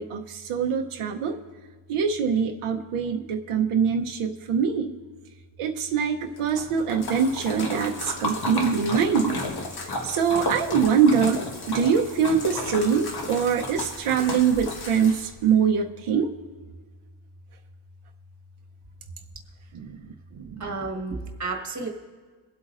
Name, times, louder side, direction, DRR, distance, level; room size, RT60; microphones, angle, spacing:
voice 1, 0.0-1.4 1.9-4.9 5.6-9.4 9.8-16.3 19.7-20.6, right 6 dB, 85° right, 2 dB, 0.9 m, -24 dB
Splash splatter, 6.4-15.5, left 2 dB, 50° left, 1.6 m, -33 dB
voice 2, 20.6-21.9, right 3 dB, 35° right, 2 dB, 1.5 m, -31 dB
23.5 x 8.2 x 2.5 m, 1.5 s
wide cardioid pair, 150°, 50 cm